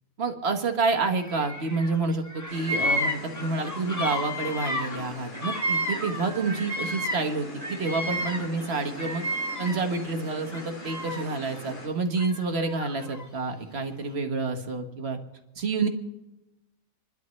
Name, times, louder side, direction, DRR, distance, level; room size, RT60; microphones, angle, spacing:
voice 1, 0.2-9.2 9.6-15.2 15.6-15.9, right 3 dB, 50° right, 6 dB, 1.4 m, -28 dB
Bird vocalization bird call bird song, 1.2-2.0 2.2-7.3 7.6-10.0 10.5-11.4 12.2-13.3, equal, 15° left, 1.2 m, -32 dB
sound 1, 2.5-11.9, left 1 dB, 90° left, 3.1 m, -42 dB
28.0 x 12.0 x 3.1 m, 1.0 s
omnidirectional pair, 1.4 m